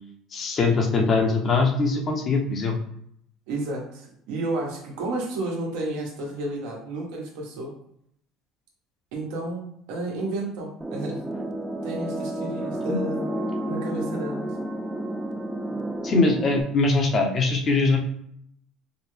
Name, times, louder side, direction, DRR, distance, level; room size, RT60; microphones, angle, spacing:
voice 1, 0.3-2.8 12.9-13.0 16.0-18.0, left 3 dB, 40° left, 2 dB, 0.9 m, -22 dB
voice 2, 3.5-7.7 9.1-11.2 11.8-13.2 13.7-14.5, right 2 dB, 80° right, -2 dB, 1.3 m, -31 dB
sound 1, 10.8-16.6, right 1 dB, 10° right, 0.4 m, -31 dB
4.9 x 2.2 x 3.3 m, 0.69 s
supercardioid pair, 110°, 0 cm